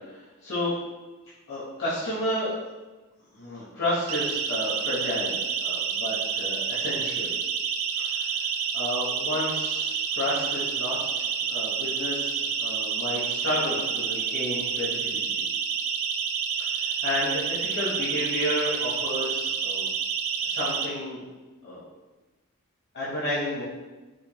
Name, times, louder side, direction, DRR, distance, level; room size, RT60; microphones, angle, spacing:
voice 1, 0.1-0.7 1.5-2.5 3.3-5.4 5.6-7.3 8.0-8.3 8.7-15.5 16.6-19.9 20.4-21.2 21.6-21.8 22.9-23.6, left 1 dB, 50° left, -10 dB, 0.9 m, -31 dB
Siren, 4.1-20.9, right 6 dB, 65° right, 0.3 m, -29 dB
5.1 x 2.2 x 2.9 m, 1.2 s
head